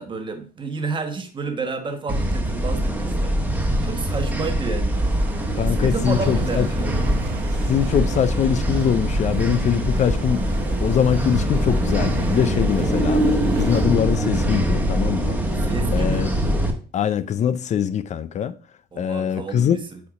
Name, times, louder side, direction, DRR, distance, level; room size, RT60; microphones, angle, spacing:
voice 1, 0.0-3.3 3.8-5.0 5.6-7.1 15.6-16.3 18.9-20.0, right 4 dB, 30° right, 1.3 m, -30 dB
sound 1, 2.1-16.7, right 1 dB, 10° right, 1.2 m, -23 dB
sound 2, 4.9-13.8, right 7 dB, 85° right, 1.0 m, -38 dB
voice 2, 5.6-6.7 7.7-10.4 10.8-13.2 13.6-15.4 15.9-16.3 16.9-18.5 19.0-19.8, left 9 dB, 45° left, 0.4 m, -22 dB
8.4 x 2.9 x 4.9 m
cardioid pair, 110°, 17 cm